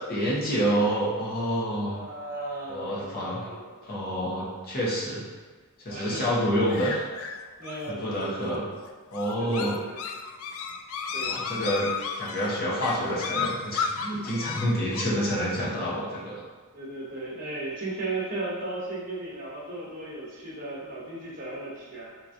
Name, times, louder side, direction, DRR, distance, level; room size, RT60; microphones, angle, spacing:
voice 1, 0.1-2.0 2.7-3.4 3.8-5.2 5.8-7.0 7.9-8.6 9.1-9.8 11.2-11.9 12.2-16.4, equal, 45° left, -6 dB, 1.0 m, -28 dB
voice 2, 1.8-3.7 4.4-4.6 5.9-6.3 7.6-8.8 9.4-10.2 11.1-11.4 16.7-22.3, right 2 dB, 40° right, -6 dB, 0.9 m, -36 dB
sound 1, 6.7-15.0, left 6 dB, 65° left, 0.3 m, -34 dB
3.8 x 3.0 x 2.7 m, 1.4 s
head